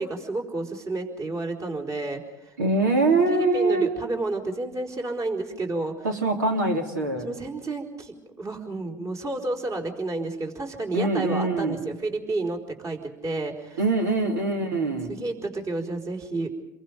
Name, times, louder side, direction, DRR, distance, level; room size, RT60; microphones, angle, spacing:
voice 1, 0.0-2.5 3.3-6.1 7.2-13.8 14.2-14.4 15.1-16.5, right 2 dB, 35° right, 3 dB, 4.5 m, -31 dB
voice 2, 2.6-3.9 6.0-7.3 10.9-11.8 13.8-15.1, right 2 dB, 90° right, 4 dB, 3.3 m, -23 dB
30.0 x 23.0 x 5.3 m, 0.96 s
hypercardioid pair, 75°, 10 cm